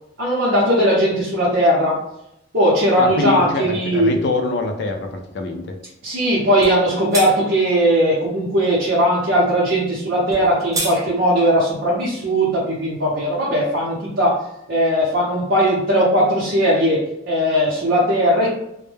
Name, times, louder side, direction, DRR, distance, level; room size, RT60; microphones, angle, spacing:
voice 1, 0.2-2.0 2.5-4.1 6.0-14.4 14.7-18.5, equal, 70° right, -7 dB, 0.7 m, -18 dB
voice 2, 3.0-5.8, left 2 dB, 60° left, 4 dB, 0.4 m, -24 dB
sound 1, 6.6-6.8 7.1-7.3 10.3-11.0, right 2 dB, 15° right, 0.4 m, -25 dB
2.1 x 2.1 x 3.1 m, 0.84 s
head